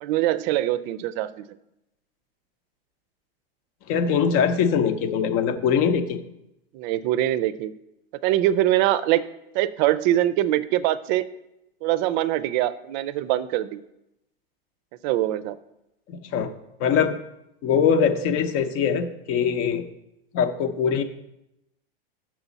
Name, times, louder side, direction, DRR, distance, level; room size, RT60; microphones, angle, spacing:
voice 1, 0.0-1.4 6.7-7.7 8.2-9.2 9.5-11.2 11.8-13.8 15.0-15.6, right 14 dB, 50° right, 15 dB, 0.5 m, -23 dB
voice 2, 3.9-6.2 16.1-16.5 16.8-17.1 17.6-19.8 20.3-21.0, left 7 dB, 50° left, 9 dB, 0.8 m, -22 dB
7.0 x 6.2 x 4.0 m, 0.86 s
supercardioid pair, 125°, 29 cm